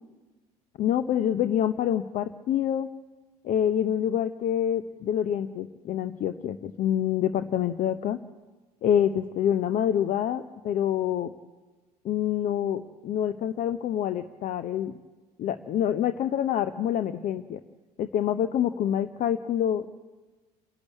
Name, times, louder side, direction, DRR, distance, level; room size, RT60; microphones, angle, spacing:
voice 1, 0.8-2.9 3.4-8.2 8.8-11.3 12.0-14.9 15.4-17.6 18.0-19.9, left 10 dB, 40° left, 11 dB, 0.7 m, -26 dB
28.5 x 11.5 x 8.2 m, 1.2 s
figure-of-eight pair, 65°, 20 cm